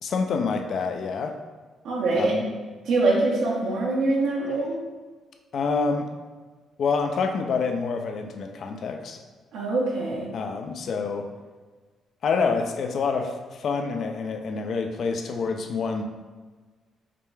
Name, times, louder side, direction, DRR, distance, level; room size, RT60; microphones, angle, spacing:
voice 1, 0.0-1.4 2.1-2.4 4.4-4.5 5.5-6.1 6.8-9.2 10.3-11.3 12.2-16.0, left 4 dB, 60° left, 5 dB, 0.4 m, -27 dB
voice 2, 1.8-2.4 2.8-4.8 9.5-10.3, right 2 dB, 85° right, -4 dB, 0.8 m, -24 dB
5.0 x 2.2 x 3.3 m, 1.4 s
cardioid pair, 90°, 0 cm